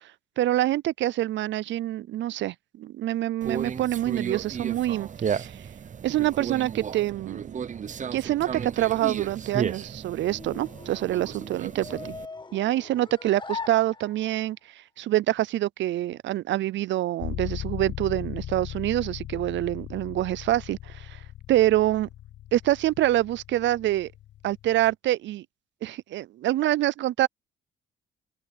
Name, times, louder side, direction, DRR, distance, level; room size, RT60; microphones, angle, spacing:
voice 1, 0.4-5.5 6.0-7.5 8.1-12.2 12.5-14.6 15.0-21.2 21.5-22.1 22.5-24.1 24.4-25.4 25.8-27.3, right 14 dB, 70° right, 0.5 m, -26 dB
Conversation, 3.4-12.3, right 7 dB, 40° right, 0.8 m, -34 dB
sound 1, 9.6-14.5, left 4 dB, 25° left, 1.6 m, -41 dB
sound 2, 17.2-24.9, left 13 dB, 85° left, 7.9 m, -38 dB
cardioid pair, 90°, 20 cm